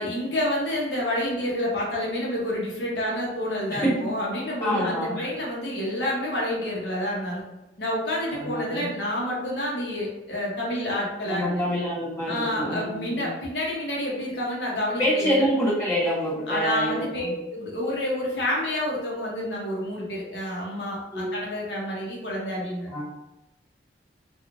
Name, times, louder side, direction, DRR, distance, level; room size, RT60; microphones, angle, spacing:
voice 1, 0.0-7.4 7.8-11.6 12.3-15.4 16.5-22.9, left 1 dB, 70° left, -3 dB, 0.8 m, -29 dB
voice 2, 4.6-5.2 8.4-8.9 11.2-13.3 15.0-17.3 21.1-21.3 22.9-23.0, equal, 15° left, -9 dB, 1.2 m, -26 dB
3.0 x 2.3 x 2.5 m, 0.99 s
head